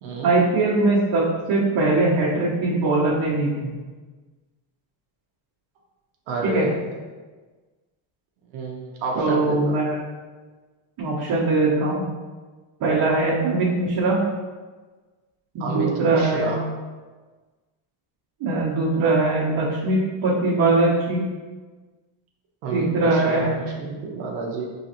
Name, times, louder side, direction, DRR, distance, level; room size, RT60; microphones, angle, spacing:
voice 1, 0.2-3.7 6.4-6.7 9.1-10.0 11.0-12.0 12.8-14.2 15.5-16.5 18.4-21.2 22.7-23.6, right 2 dB, 65° right, -9 dB, 1.2 m, -21 dB
voice 2, 6.3-6.8 8.5-9.8 15.6-16.6 22.6-24.7, right 3 dB, 85° right, -1 dB, 0.9 m, -29 dB
3.9 x 3.2 x 2.9 m, 1.3 s
cardioid pair, 110°, 48 cm